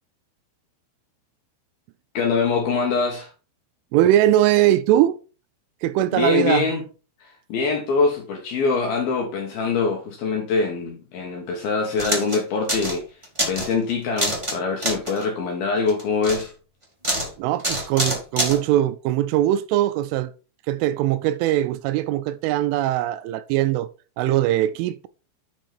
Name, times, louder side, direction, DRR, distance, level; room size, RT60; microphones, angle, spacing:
voice 1, 2.1-3.3 6.1-6.8 7.2-16.5, left 4 dB, 75° left, 2.3 m, -24 dB
voice 2, 3.9-5.2 5.8-6.7 17.4-20.3 20.7-23.9 24.2-25.1, right 13 dB, 85° right, 2.9 m, -21 dB
sound 1, 12.0-12.4 12.7-13.0 13.2-13.7 14.2-14.6 14.8-15.2 15.9-16.4 17.0-17.3 17.6-18.6, right 1 dB, 45° right, 0.3 m, -25 dB
9.1 x 5.3 x 4.4 m
omnidirectional pair, 5.8 m